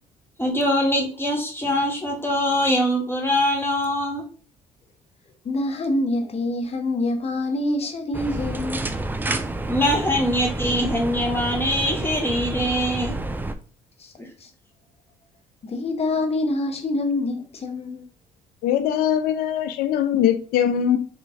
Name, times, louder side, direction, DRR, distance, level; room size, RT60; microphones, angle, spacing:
voice 1, 0.4-4.2 9.7-13.2 14.2-14.3, equal, 15° left, 1.0 m, -23 dB
voice 2, 5.4-8.9 14.0-14.1 14.4-14.5 15.6-18.1, left 2 dB, 40° left, 0.9 m, -26 dB
sound 1, 8.1-13.5, right 2 dB, 10° right, 0.4 m, -29 dB
voice 3, 18.6-21.0, left 9 dB, 70° left, 0.5 m, -21 dB
3.3 x 3.1 x 2.5 m
hypercardioid pair, 60°, 16 cm